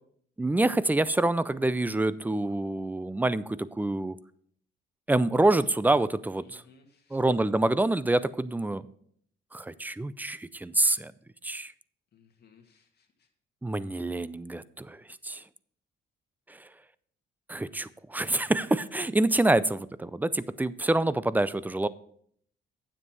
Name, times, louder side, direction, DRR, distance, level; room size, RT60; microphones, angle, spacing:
voice 1, 0.4-4.2 5.1-6.6 7.1-8.9 9.5-11.1 11.4-11.7 13.6-15.4 16.5-16.7 17.5-21.9, right 2 dB, 10° right, 17 dB, 0.4 m, -26 dB
voice 2, 6.4-7.2 12.1-13.3, left 5 dB, 55° left, 2 dB, 1.9 m, -59 dB
9.6 x 7.5 x 4.6 m, 0.63 s
cardioid pair, 90°, 20 cm